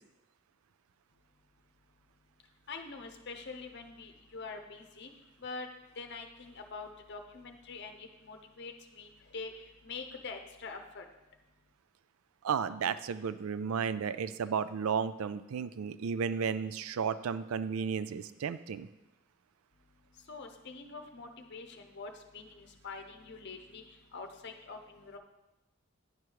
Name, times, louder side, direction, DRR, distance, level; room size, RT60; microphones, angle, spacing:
voice 1, 2.7-5.1 5.4-5.7 6.0-9.5 9.8-11.0 20.3-23.8 24.1-25.2, left 4 dB, 55° left, 5 dB, 0.8 m, -45 dB
voice 2, 12.4-18.9, right 6 dB, 85° right, 13 dB, 0.4 m, -33 dB
9.5 x 4.9 x 4.7 m, 1.0 s
head